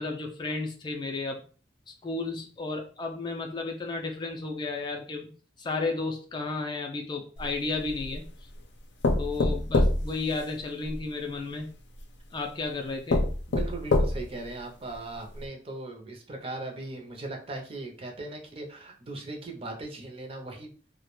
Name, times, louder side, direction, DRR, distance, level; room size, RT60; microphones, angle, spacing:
voice 1, 0.0-1.4 1.9-5.3 5.6-8.2 9.2-11.7 12.3-13.3, left 3 dB, 25° left, 3 dB, 0.3 m, -33 dB
sound 1, 7.4-8.3 9.0-11.0 12.0-12.1 12.6-12.7 13.1-14.4 14.9-15.0 15.4-15.5, left 2 dB, 90° left, 0.5 m, -26 dB
voice 2, 13.5-20.7, right 2 dB, 35° right, 2 dB, 0.5 m, -39 dB
2.2 x 2.1 x 2.9 m, 0.40 s
head